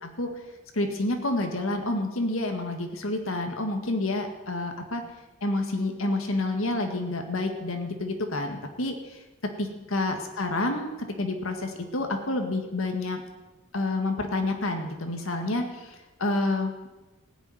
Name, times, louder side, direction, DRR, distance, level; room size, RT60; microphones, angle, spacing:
voice 1, 0.0-0.3 0.7-5.0 5.4-9.2 9.6-10.9 11.2-13.2 13.7-16.7, left 2 dB, 85° left, 4 dB, 1.9 m, -29 dB
16.0 x 7.1 x 9.8 m, 1.1 s
head